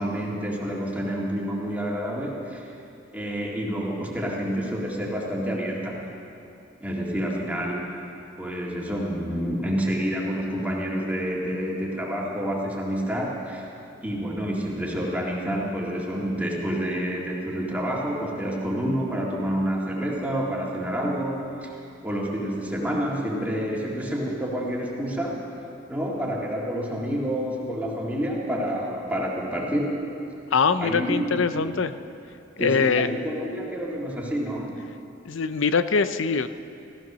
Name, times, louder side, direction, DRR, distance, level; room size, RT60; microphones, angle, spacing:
voice 1, 0.0-2.7 3.1-6.1 6.8-7.9 8.4-13.7 14.0-21.8 22.0-25.6 25.9-30.0 30.8-31.7 32.6-34.9, equal, 10° right, -3 dB, 2.2 m, -28 dB
voice 2, 30.5-31.9 32.6-33.1 35.2-36.5, left 5 dB, 90° left, 12 dB, 0.6 m, -23 dB
15.5 x 14.5 x 6.2 m, 2.7 s
head